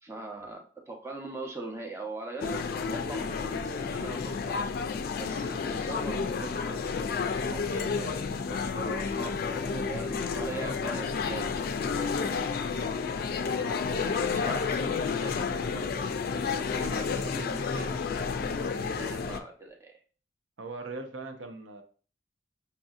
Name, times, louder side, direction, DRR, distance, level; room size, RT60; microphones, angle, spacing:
voice 1, 0.0-4.6 5.2-11.7 11.9-12.2 13.3-16.1 16.7-19.9, right 2 dB, 15° right, 1 dB, 0.6 m, -41 dB
sound 1, 2.4-19.4, left 5 dB, 55° left, 0.3 m, -31 dB
voice 2, 13.4-14.0 16.7-17.1 18.5-18.8 20.6-21.8, right 3 dB, 90° right, 5 dB, 0.6 m, -41 dB
5.3 x 2.7 x 2.4 m, 0.39 s
head